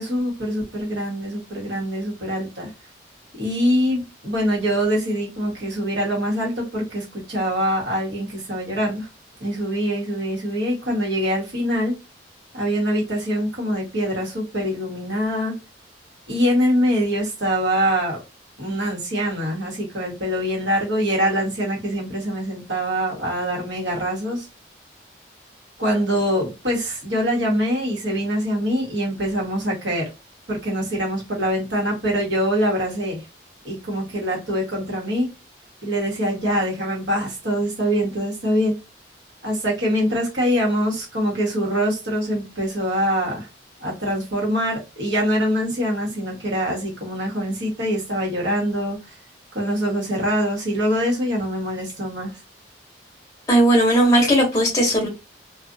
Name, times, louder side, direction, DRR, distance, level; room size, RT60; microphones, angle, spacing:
voice 1, 0.0-2.7 3.4-9.1 9.4-12.0 12.5-15.5 16.3-18.2 18.6-24.5 25.8-30.1 30.5-33.2 33.6-35.3 35.8-38.8 39.4-43.5 43.8-49.0 49.5-52.3, equal, 75° right, -3 dB, 1.3 m, -24 dB
voice 2, 53.5-55.1, right 1 dB, 20° left, 0 dB, 0.7 m, -17 dB
2.5 x 2.4 x 2.6 m, 0.26 s
head